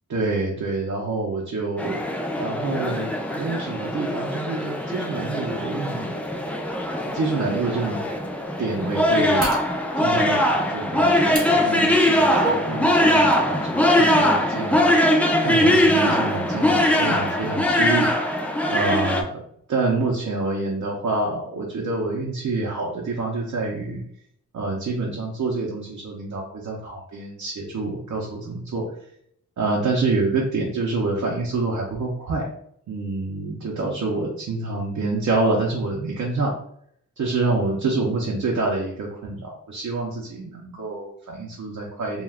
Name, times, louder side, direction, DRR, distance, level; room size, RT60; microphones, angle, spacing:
voice 1, 0.1-2.0 2.4-6.2 7.1-8.0 8.6-9.5 10.0-15.0 15.4-18.1 18.7-19.4 19.7-24.0 24.5-28.9 29.6-32.5 32.9-36.5 37.2-42.2, right 3 dB, 70° right, -2 dB, 0.6 m, -27 dB
sound 1, 1.8-19.2, left 1 dB, 5° left, 0.3 m, -21 dB
sound 2, 9.4-9.7 11.3-11.5 12.0-12.6 13.0-13.2, right 2 dB, 30° right, 0.7 m, -28 dB
2.3 x 2.3 x 3.3 m, 0.67 s
wide cardioid pair, 105°, 30 cm